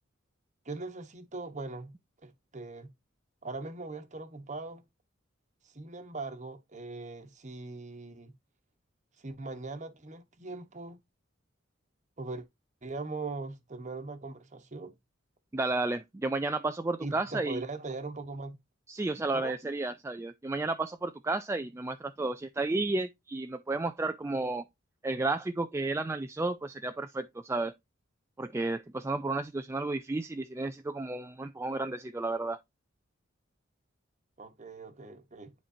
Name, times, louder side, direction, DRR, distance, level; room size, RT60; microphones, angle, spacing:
voice 1, 0.6-1.9 2.2-2.9 3.4-4.9 5.6-8.3 9.2-11.0 12.2-12.4 12.8-14.9 17.0-18.6 19.3-19.5 34.4-35.5, right 3 dB, 35° right, 1.1 m, -40 dB
voice 2, 15.5-17.6 18.9-24.6 25.0-27.7 28.4-32.6, right 2 dB, 15° right, 0.3 m, -32 dB
10.0 x 4.5 x 2.7 m
head